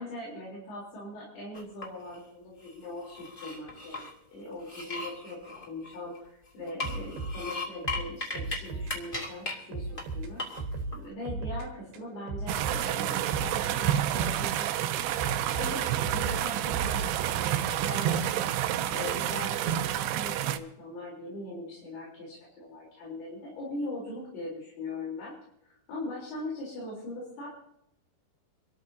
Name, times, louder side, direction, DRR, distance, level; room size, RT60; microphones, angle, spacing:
voice 1, 0.0-10.4 10.9-15.2 15.5-25.3 25.6-27.5, left 1 dB, 70° left, -5 dB, 5.8 m, -41 dB
sound 1, 1.5-2.2 2.6-4.1 4.6-6.3 6.7-8.6 8.9-9.5 10.0-10.1 10.4-11.0, left 3 dB, 20° left, 1.6 m, -37 dB
sound 2, 6.8-9.0 9.2-9.4 9.7-11.7 11.9-14.8 15.2-17.7, right 3 dB, 65° right, 3.1 m, -37 dB
sound 3, 12.5-20.6, right 11 dB, 90° right, 2.9 m, -29 dB
27.5 x 13.5 x 2.8 m, 0.77 s
omnidirectional pair, 4.8 m